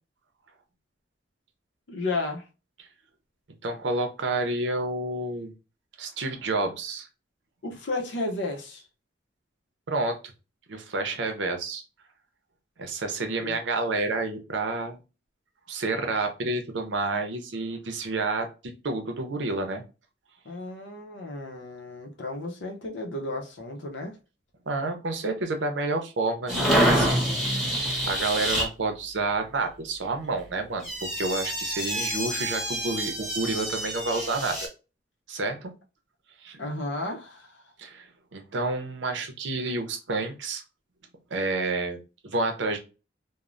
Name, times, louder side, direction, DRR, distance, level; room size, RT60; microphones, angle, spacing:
voice 1, 1.9-2.4 7.6-8.8 13.4-13.6 20.4-24.2 36.6-37.6, left 2 dB, 75° left, 0.6 m, -33 dB
voice 2, 3.6-5.5 6.0-7.1 9.9-10.2 10.7-11.8 12.8-15.0 15.7-19.8 24.7-27.7 28.0-34.7 35.3-35.7 36.4-36.6 37.8-38.1 38.3-40.6 41.3-42.8, right 3 dB, 75° right, 0.6 m, -29 dB
sound 1, 26.5-28.7 30.8-34.7, equal, ahead, 0.9 m, -27 dB
3.1 x 2.0 x 2.4 m
head